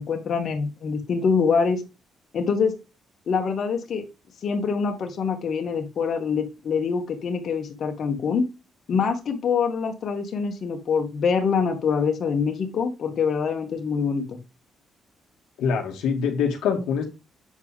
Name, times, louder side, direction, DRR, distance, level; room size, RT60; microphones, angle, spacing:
voice 1, 0.0-1.8 2.3-2.7 3.3-4.0 4.4-8.5 8.9-14.4, left 5 dB, 60° left, 3 dB, 2.0 m, -25 dB
voice 2, 15.6-17.0, left 6 dB, 90° left, 2 dB, 1.9 m, -24 dB
8.1 x 4.7 x 3.5 m, 0.27 s
cardioid pair, 90°, 0 cm